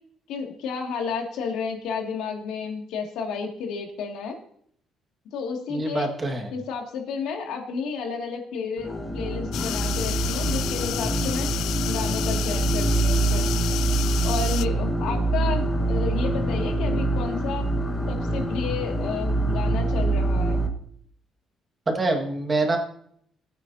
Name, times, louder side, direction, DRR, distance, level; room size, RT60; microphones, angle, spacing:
voice 1, 0.3-4.4 5.3-6.1 6.5-13.5 14.2-17.7 18.1-20.6, left 5 dB, 90° left, 2 dB, 2.3 m, -32 dB
voice 2, 5.7-6.5 21.9-22.8, right 2 dB, 20° right, 3 dB, 1.8 m, -25 dB
sound 1, 8.8-20.7, right 2 dB, 10° left, 1.4 m, -25 dB
sound 2, 9.5-14.6, left 13 dB, 75° left, 0.3 m, -31 dB
20.0 x 9.1 x 2.8 m, 0.66 s
cardioid pair, 170°, 0 cm